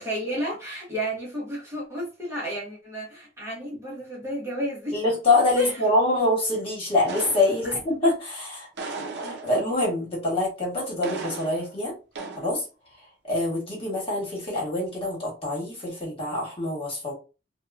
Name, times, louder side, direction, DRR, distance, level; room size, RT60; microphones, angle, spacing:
voice 1, 0.0-5.0 5.5-5.8 7.6-7.8, right 1 dB, 15° right, 0.8 m, -32 dB
voice 2, 4.9-8.7 9.2-11.9 12.4-12.6 13.2-17.1, left 2 dB, 30° left, 1.3 m, -25 dB
sound 1, 7.1-8.0 8.8-9.8 11.0-11.8 12.2-12.5, right 3 dB, 65° right, 0.5 m, -36 dB
2.8 x 2.2 x 2.4 m
head